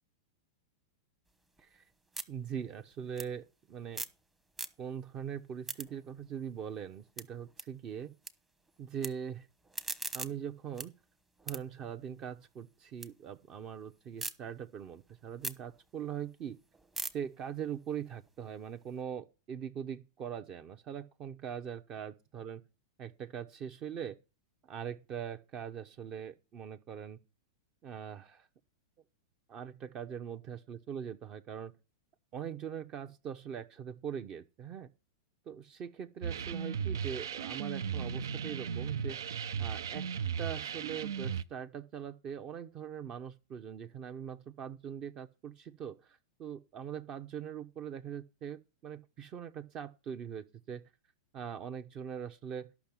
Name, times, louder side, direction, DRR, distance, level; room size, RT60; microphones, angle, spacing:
sound 1, 1.3-4.2 4.5-5.1 5.4-8.3 8.6-9.1 9.5-13.1 13.5-14.3 14.8-18.9, right 2 dB, 10° right, 1.0 m, -44 dB
voice 1, 2.3-4.0 4.8-8.1 8.8-9.5 10.1-10.9 11.4-16.6 17.1-22.6 23.0-24.2 24.6-27.2 27.8-28.5 29.5-31.7 32.3-34.9 35.5-39.2 39.6-40.1 40.4-50.9 51.3-52.7, right 8 dB, 35° right, 0.9 m, -42 dB
sound 2, 36.2-41.4, right 7 dB, 75° right, 0.6 m, -36 dB
12.0 x 6.0 x 7.2 m
hypercardioid pair, 105°, 2 cm